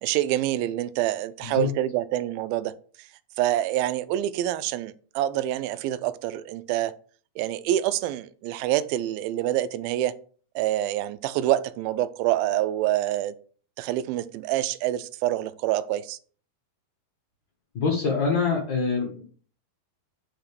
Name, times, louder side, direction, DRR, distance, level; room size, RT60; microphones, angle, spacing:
voice 1, 0.0-2.7 3.0-3.1 3.4-6.9 7.4-10.1 10.6-13.3 13.8-16.2, right 13 dB, 85° right, 2.4 m, -26 dB
voice 2, 17.7-19.2, left 5 dB, 50° left, 1.4 m, -25 dB
5.9 x 5.1 x 6.8 m
omnidirectional pair, 4.2 m